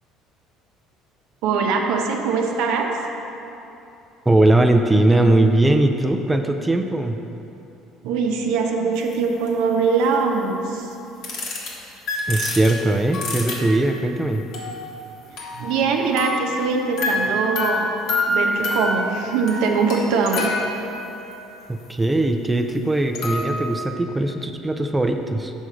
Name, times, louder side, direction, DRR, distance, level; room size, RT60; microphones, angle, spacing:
voice 1, 1.4-2.9 8.0-10.9 15.5-17.9 18.3-20.5, right 5 dB, 80° right, 2 dB, 0.7 m, -22 dB
voice 2, 4.3-7.2 12.3-14.4 21.7-25.5, right 2 dB, 10° right, 4 dB, 0.4 m, -19 dB
sound 1, 9.1-9.2 9.5-9.6 11.2-11.7 12.1-14.0 14.5-15.9 16.2-21.3 22.7-22.8 23.1-23.9, left 2 dB, 70° left, 1.5 m, -27 dB
6.2 x 5.7 x 4.9 m, 2.9 s
cardioid pair, 110°, 0 cm